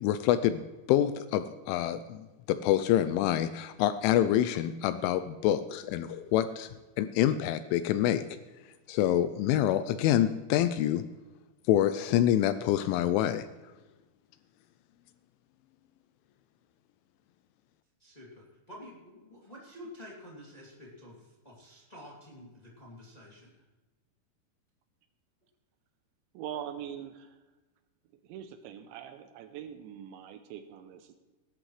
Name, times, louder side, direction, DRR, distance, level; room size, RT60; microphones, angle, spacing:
voice 1, 0.0-6.7 7.0-8.2 8.9-11.0 11.7-13.5, left 12 dB, 85° left, 12 dB, 2.9 m, -26 dB
voice 2, 18.0-23.6, left 1 dB, 20° left, -4 dB, 1.2 m, -49 dB
voice 3, 26.3-27.4 28.2-31.2, right 10 dB, 80° right, 8 dB, 2.8 m, -42 dB
18.5 x 11.5 x 3.3 m, 1.1 s
omnidirectional pair, 5.7 m